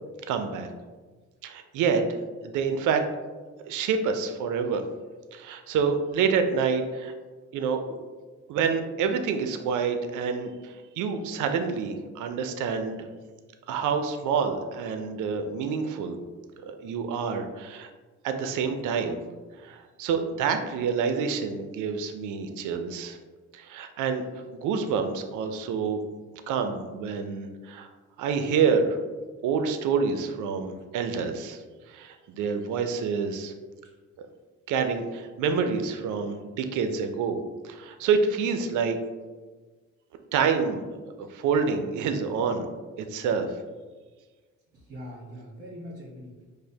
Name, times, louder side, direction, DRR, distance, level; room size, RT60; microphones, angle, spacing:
voice 1, 0.3-0.7 1.4-2.2 2.5-3.0 3.6-4.8 5.3-7.1 7.5-7.8 8.5-13.1 13.7-16.2 16.7-17.9 18.2-19.2 19.6-23.2 23.5-24.2 24.5-26.0 26.5-27.9 28.2-29.0 29.4-31.6 31.9-33.5 34.7-37.4 37.6-39.0 40.3-40.8 41.2-42.7 43.0-43.6, right 5 dB, 80° right, 7 dB, 0.5 m, -27 dB
voice 2, 44.7-46.4, equal, 50° right, -6 dB, 1.1 m, -42 dB
4.9 x 2.1 x 2.7 m, 1.3 s
cardioid pair, 90°, 30 cm